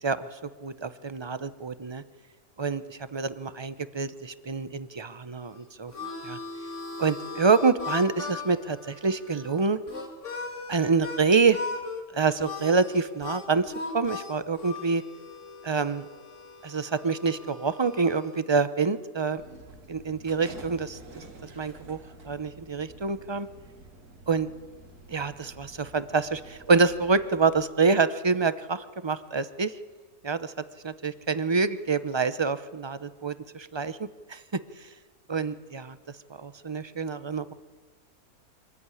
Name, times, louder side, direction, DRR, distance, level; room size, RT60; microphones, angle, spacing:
voice 1, 0.0-2.0 2.6-5.9 6.2-6.4 7.0-9.8 10.7-11.6 12.1-15.0 15.6-16.0 16.6-19.4 19.9-21.2 21.6-22.0 22.2-23.5 24.3-24.5 25.1-29.7 30.2-30.5 30.8-34.0 34.3-34.4 35.3-36.0 36.3-37.5, right 4 dB, 25° right, 13 dB, 0.6 m, -26 dB
Harmonica, 5.4-11.2 11.5-12.0 12.4-18.4, left 3 dB, 50° left, 2.9 m, -39 dB
sound 1, 19.4-27.6, right 2 dB, 85° right, 2.7 m, -49 dB
25.0 x 14.0 x 9.8 m, 1.4 s
omnidirectional pair, 1.6 m